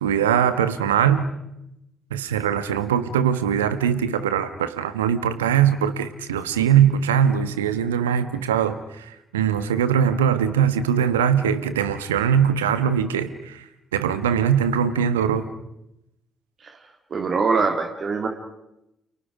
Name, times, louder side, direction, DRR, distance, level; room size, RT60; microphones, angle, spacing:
voice 1, 0.0-1.3 2.1-13.6 13.9-15.4, right 8 dB, 75° right, 12 dB, 1.3 m, -21 dB
voice 2, 17.1-18.3, right 4 dB, 45° right, 4 dB, 2.3 m, -23 dB
29.5 x 29.5 x 5.0 m, 0.85 s
figure-of-eight pair, 45°, 0 cm